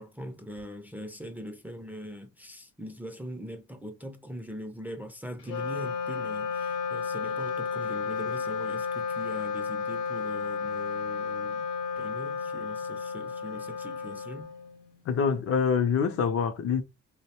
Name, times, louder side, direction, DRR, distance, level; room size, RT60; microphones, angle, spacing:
voice 1, 0.0-11.7 12.0-14.5, equal, 5° right, 0.4 m, -41 dB
Wind instrument woodwind instrument, 5.4-15.0, left 5 dB, 80° left, 0.8 m, -33 dB
voice 2, 15.1-16.8, left 6 dB, 50° left, 0.5 m, -25 dB
2.5 x 2.1 x 2.8 m
cardioid pair, 90°, 30 cm